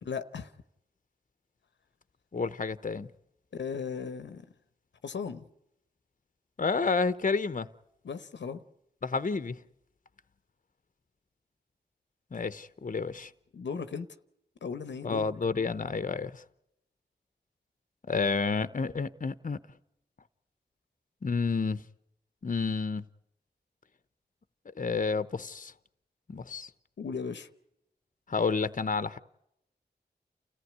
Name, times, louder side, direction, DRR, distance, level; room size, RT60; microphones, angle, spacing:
voice 1, 0.0-0.5 3.5-4.5 5.0-5.5 8.0-8.6 13.5-14.1 14.6-15.3 27.0-27.5, left 6 dB, 85° left, 1.0 m, -36 dB
voice 2, 2.3-3.1 6.6-7.7 9.0-9.6 12.3-13.3 15.0-16.4 18.1-19.6 21.2-21.8 22.4-23.0 24.8-25.7 26.3-26.7 28.3-29.2, left 4 dB, 45° left, 0.9 m, -30 dB
29.0 x 15.0 x 9.5 m
cardioid pair, 40°, 18 cm